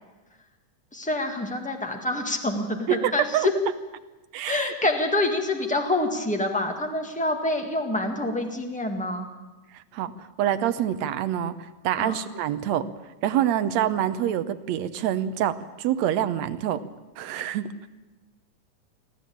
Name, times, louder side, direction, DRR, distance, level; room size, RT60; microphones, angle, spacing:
voice 1, 0.9-3.5 4.5-9.2 12.0-12.2, left 2 dB, 5° left, 3 dB, 0.8 m, -26 dB
voice 2, 2.9-3.5 4.3-4.7 9.7-12.9 13.2-16.8 17.2-17.7, right 11 dB, 70° right, 12 dB, 1.9 m, -26 dB
21.5 x 14.0 x 8.6 m, 1.1 s
omnidirectional pair, 3.5 m